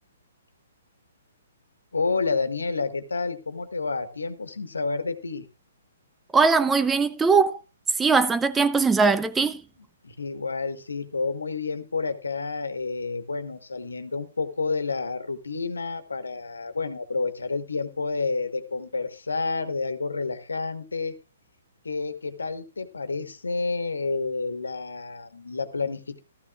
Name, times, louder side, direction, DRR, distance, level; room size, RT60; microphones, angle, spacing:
voice 1, 1.9-5.5 10.0-21.1 21.8-26.2, left 4 dB, 85° left, 1.4 m, -29 dB
voice 2, 6.3-7.6 8.0-9.6, right 4 dB, 10° right, 0.5 m, -20 dB
14.5 x 13.5 x 2.4 m
figure-of-eight pair, 125°, 0 cm